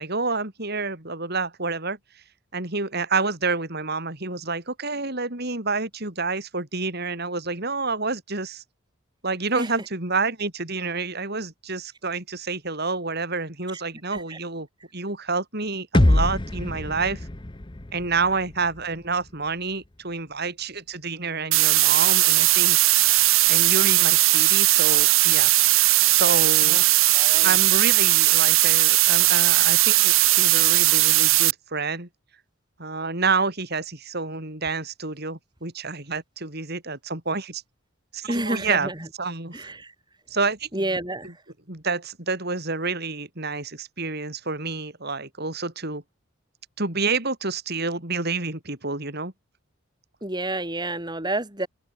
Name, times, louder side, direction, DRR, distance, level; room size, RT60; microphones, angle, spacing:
voice 1, 0.0-2.0 2.5-8.6 9.2-14.7 14.9-17.3 17.9-22.8 23.5-25.5 26.1-26.8 27.4-32.1 32.8-37.6 38.1-38.9 39.2-39.7 40.3-40.8 41.7-46.0 46.8-49.3, right 4 dB, 50° right, 4.7 m, -28 dB
sound 1, 15.9-19.9, left 1 dB, 25° left, 0.9 m, -25 dB
sound 2, 21.5-31.5, right 18 dB, 75° right, 0.9 m, -18 dB
voice 2, 27.1-27.6 38.3-39.1 39.5-39.9 40.7-41.4 50.2-51.7, right 1 dB, 20° right, 6.1 m, -30 dB
open air
head